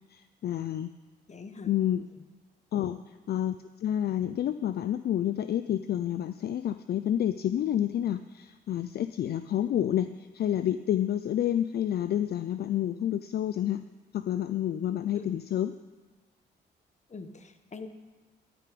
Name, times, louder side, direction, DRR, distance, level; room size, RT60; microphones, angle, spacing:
voice 1, 0.1-0.9 1.7-2.0 2.7-3.0 3.3-13.8 14.1-15.7, left 11 dB, 60° left, 12 dB, 0.4 m, -29 dB
voice 2, 1.3-1.7 2.7-2.9 15.1-15.3 17.1-17.9, left 4 dB, 40° left, 8 dB, 1.2 m, -43 dB
12.0 x 8.5 x 5.1 m, 1.3 s
cardioid pair, 65°, 18 cm